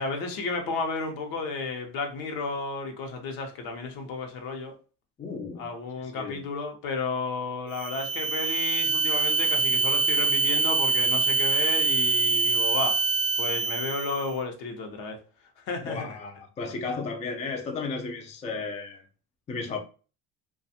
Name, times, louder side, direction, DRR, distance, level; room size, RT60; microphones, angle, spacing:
voice 1, 0.0-4.7 5.6-13.0 13.4-15.2 15.7-16.1, left 3 dB, 70° left, 0.8 m, -32 dB
voice 2, 5.2-5.7 6.0-6.4 15.8-19.0 19.5-19.8, left 4 dB, 20° left, 0.4 m, -34 dB
sound 1, 7.7-14.3, right 4 dB, 45° right, 0.5 m, -25 dB
2.5 x 2.3 x 2.6 m
cardioid pair, 110°, 37 cm